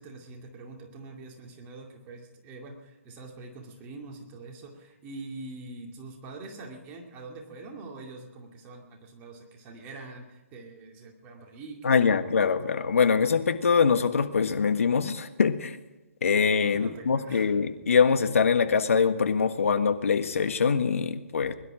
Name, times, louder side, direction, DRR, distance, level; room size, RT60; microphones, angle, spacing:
voice 1, 0.0-12.2 16.7-17.5, right 3 dB, 25° right, 1 dB, 2.5 m, -44 dB
voice 2, 11.8-15.8 16.2-21.5, left 6 dB, 70° left, 9 dB, 1.5 m, -23 dB
22.0 x 11.5 x 5.0 m, 1.1 s
figure-of-eight pair, 140°, 8 cm